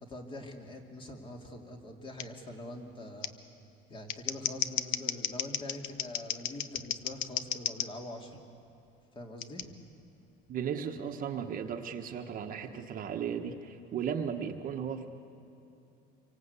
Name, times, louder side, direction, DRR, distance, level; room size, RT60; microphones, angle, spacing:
voice 1, 0.0-3.3 3.9-8.4 9.1-9.7, left 1 dB, 25° left, 3 dB, 2.7 m, -44 dB
Scissors, 2.2-2.3 3.2-3.3 3.9-7.9 9.4-9.6, left 11 dB, 70° left, 1.0 m, -34 dB
voice 2, 10.5-15.1, right 7 dB, 40° right, 5 dB, 1.3 m, -36 dB
27.0 x 24.5 x 8.3 m, 2.8 s
cardioid pair, 160°, 21 cm